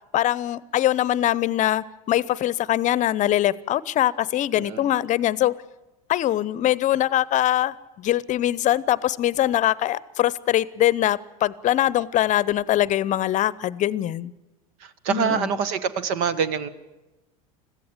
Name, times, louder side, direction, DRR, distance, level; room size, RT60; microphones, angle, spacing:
voice 1, 0.1-5.5 6.1-14.3 15.1-15.6, left 13 dB, 40° left, 20 dB, 0.8 m, -22 dB
voice 2, 4.6-4.9 14.8-16.7, right 7 dB, 65° right, 14 dB, 1.4 m, -25 dB
21.5 x 15.0 x 8.8 m, 1.1 s
hypercardioid pair, 95°, 19 cm